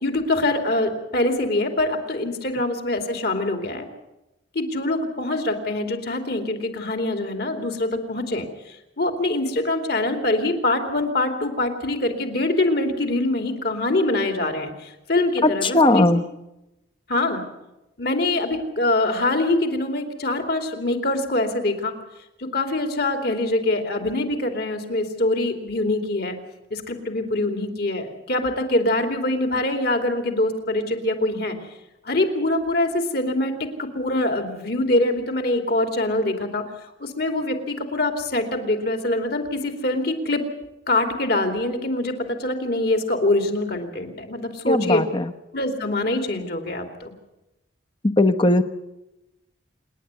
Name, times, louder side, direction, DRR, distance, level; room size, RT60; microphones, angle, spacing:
voice 1, 0.0-3.9 4.5-16.1 17.1-17.4 18.0-21.9 22.4-26.4 26.7-31.6 32.0-36.7 37.0-40.4 40.9-45.0 45.5-47.1, left 2 dB, 55° left, 5 dB, 2.8 m, -24 dB
voice 2, 15.4-16.2 44.7-45.3 48.0-48.6, left 2 dB, 25° left, 9 dB, 0.9 m, -18 dB
27.0 x 10.5 x 9.5 m, 0.95 s
head